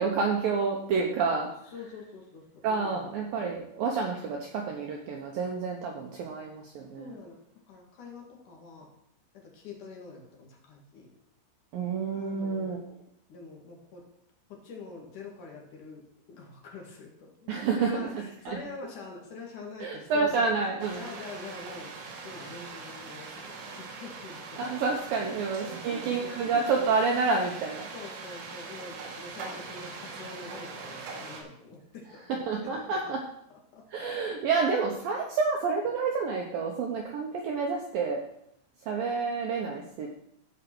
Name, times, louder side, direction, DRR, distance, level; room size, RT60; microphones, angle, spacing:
voice 1, 0.0-1.5 2.6-7.1 11.7-12.8 17.5-18.1 18.5-18.6 19.8-21.0 24.6-27.9 32.3-33.2 33.9-38.2 38.9-40.1, right 4 dB, 90° right, 0 dB, 2.0 m, -29 dB
voice 2, 1.7-3.1 7.0-7.4 7.7-8.9 9.3-11.1 12.1-12.7 13.3-14.0 14.5-20.5 20.9-21.9 22.2-24.8 25.2-26.4 27.9-32.2 32.6-33.1 33.7-33.8, left 4 dB, 50° left, 0 dB, 2.8 m, -45 dB
sound 1, 20.8-31.4, right 4 dB, 70° right, 3.9 m, -42 dB
15.0 x 5.2 x 6.1 m, 0.73 s
omnidirectional pair, 5.8 m